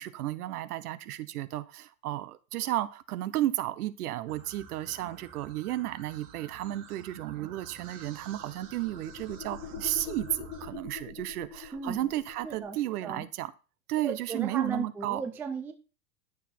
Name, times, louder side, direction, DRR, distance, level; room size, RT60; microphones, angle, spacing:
voice 1, 0.0-13.5 13.9-15.2, right 14 dB, 65° right, 1.2 m, -33 dB
sound 1, 4.3-10.7, right 7 dB, 45° right, 2.7 m, -50 dB
sound 2, 7.8-12.8, left 8 dB, 40° left, 1.1 m, -44 dB
voice 2, 12.4-12.8 13.0-13.2 14.0-15.7, right 5 dB, 5° right, 0.4 m, -35 dB
12.0 x 6.8 x 4.4 m
supercardioid pair, 145°, 48 cm